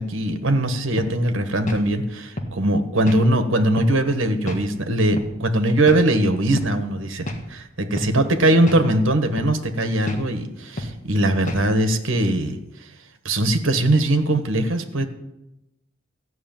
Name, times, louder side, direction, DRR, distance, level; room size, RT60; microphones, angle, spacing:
voice 1, 0.0-12.6 13.2-15.1, right 1 dB, 70° right, 8 dB, 1.4 m, -21 dB
sound 1, 1.0-1.2 1.7-1.9 2.4-2.6 3.1-3.2 3.8-4.0 4.5-4.6 5.2-5.4 5.9-6.1 6.6-6.7 7.3-7.4 8.0-8.1 8.7-8.9 9.4-9.6 10.1-10.2 10.8-11.0 11.5-11.7, equal, 35° left, 1.6 m, -29 dB
14.5 x 6.3 x 9.1 m, 0.91 s
head